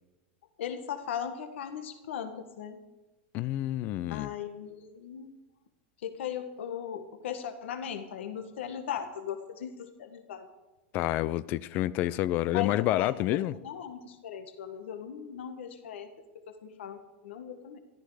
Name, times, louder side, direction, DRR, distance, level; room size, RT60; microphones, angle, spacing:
voice 1, 0.6-2.8 4.1-5.4 6.0-10.5 12.5-16.1 16.5-17.8, left 8 dB, 85° left, 8 dB, 1.6 m, -38 dB
voice 2, 3.3-4.3 10.9-13.5, left 15 dB, 30° left, 18 dB, 0.4 m, -28 dB
14.5 x 13.0 x 5.0 m, 1.1 s
supercardioid pair, 175°, 6 cm